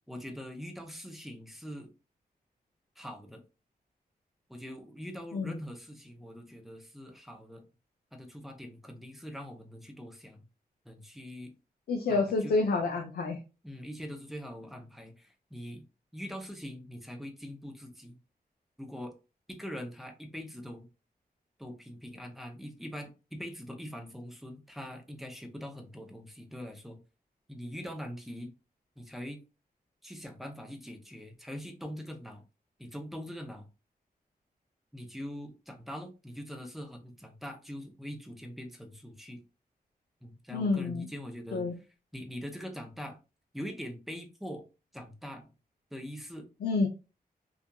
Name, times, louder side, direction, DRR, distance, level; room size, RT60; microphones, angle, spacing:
voice 1, 0.1-1.9 3.0-3.4 4.5-7.7 8.1-10.4 10.8-11.5 12.1-12.5 13.6-15.8 16.1-18.2 18.8-19.1 19.5-20.9 21.6-27.0 27.5-28.5 29.0-29.4 30.0-32.4 32.8-33.7 34.9-39.4 40.2-41.7 42.1-43.2 43.5-44.6 44.9-45.5 45.9-46.5, equal, ahead, 4 dB, 0.5 m, -43 dB
voice 2, 11.9-13.4 40.5-41.1 41.5-41.8 46.6-46.9, left 3 dB, 80° left, 3 dB, 0.4 m, -28 dB
2.7 x 2.4 x 2.2 m, 0.30 s
wide cardioid pair, 130°, 16 cm